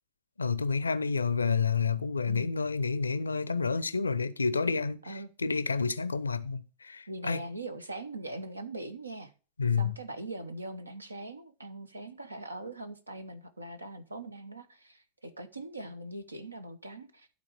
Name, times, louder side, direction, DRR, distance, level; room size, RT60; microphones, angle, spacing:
voice 1, 0.4-7.4 9.6-10.0, left 5 dB, 75° left, 0.5 m, -29 dB
voice 2, 7.1-9.3 9.8-17.3, right 2 dB, 80° right, 0.9 m, -41 dB
12.0 x 4.1 x 6.2 m
figure-of-eight pair, 90°, 0 cm